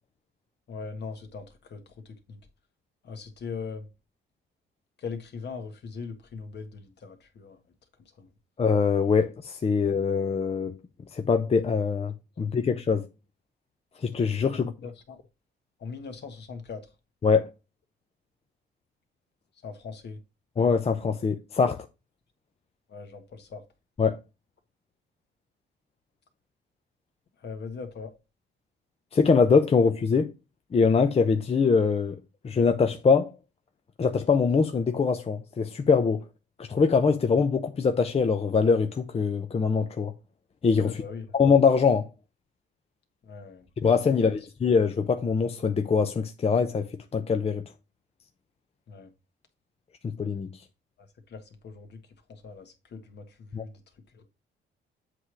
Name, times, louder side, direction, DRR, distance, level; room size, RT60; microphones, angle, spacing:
voice 1, 0.7-1.8 2.3-2.4 3.0-3.9 5.0-7.6 8.2-8.3 14.5-15.2 15.8-16.8 19.6-20.2 22.9-23.6 27.4-28.1 40.8-41.3 43.2-43.7 44.1-44.4 48.9-49.1 51.3-52.0 52.3-53.7 54.2-54.3, left 5 dB, 60° left, 1.7 m, -40 dB
voice 2, 8.6-10.8 11.1-13.1 14.0-14.7 17.2-17.5 20.6-21.8 24.0-24.2 29.1-30.3 30.7-32.2 32.4-33.3 34.0-36.2 36.6-40.1 40.6-41.0 41.3-42.1 43.8-46.9 47.1-47.6 50.0-50.5 53.5-53.6, left 5 dB, 30° left, 0.7 m, -23 dB
7.8 x 3.3 x 6.2 m
cardioid pair, 90°, 20 cm